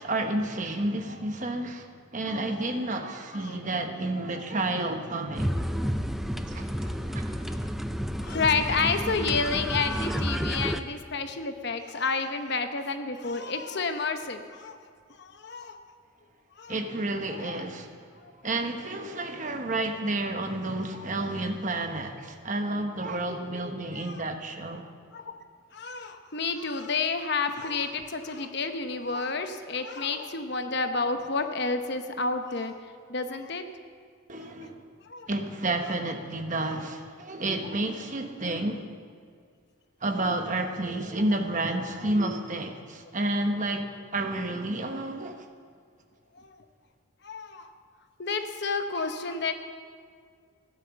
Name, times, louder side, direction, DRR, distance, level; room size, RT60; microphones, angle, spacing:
voice 1, 0.0-1.9 2.1-5.6 6.5-7.4 16.7-17.9 18.4-24.8 34.3-34.8 35.3-38.8 40.0-43.9 44.1-45.4, right 2 dB, 35° right, 5 dB, 1.0 m, -30 dB
voice 2, 3.3-3.7 4.3-4.4 5.8-5.9 6.8-6.9 7.4-7.7 8.2-14.8 15.1-15.8 16.6-16.8 17.3-17.7 18.2-18.3 21.0-21.1 23.9-24.2 25.1-25.4 25.7-33.7 34.4-34.5 35.0-35.3 36.7-36.8 41.2-41.3 46.3-46.5 47.2-47.7 48.2-49.5, left 4 dB, 50° left, 7 dB, 0.9 m, -30 dB
sound 1, 5.3-10.8, equal, ahead, 0.4 m, -30 dB
15.5 x 10.0 x 7.0 m, 2.1 s
head